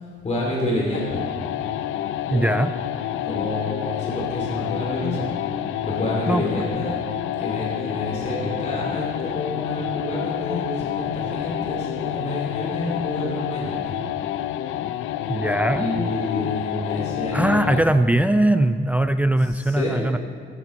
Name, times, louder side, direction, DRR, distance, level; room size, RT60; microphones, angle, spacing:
voice 1, 0.2-1.2 2.2-2.5 3.2-5.3 5.8-6.9 7.4-14.0 15.7-17.9 19.4-20.1, left 1 dB, 35° left, -3 dB, 2.6 m, -28 dB
sound 1, 0.9-17.9, left 11 dB, 85° left, 0.5 m, -28 dB
voice 2, 2.3-2.7 6.3-6.4 15.3-15.8 16.4-16.5 17.3-20.2, right 1 dB, 5° right, 10 dB, 0.4 m, -20 dB
15.0 x 9.1 x 4.2 m, 2.2 s
cardioid pair, 90°, 20 cm